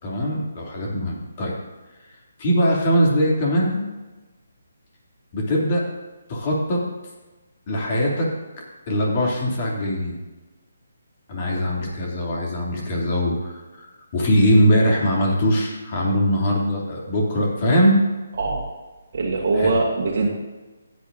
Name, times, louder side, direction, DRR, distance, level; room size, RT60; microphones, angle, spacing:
voice 1, 0.0-1.5 2.4-3.9 5.3-5.8 6.3-6.8 7.7-8.3 8.9-10.2 11.3-18.0 19.5-19.8, equal, 40° left, -2 dB, 2.9 m, -21 dB
voice 2, 19.1-20.3, right 3 dB, 50° right, -2 dB, 1.6 m, -22 dB
15.0 x 8.3 x 2.7 m, 1.2 s
figure-of-eight pair, 145°, 0 cm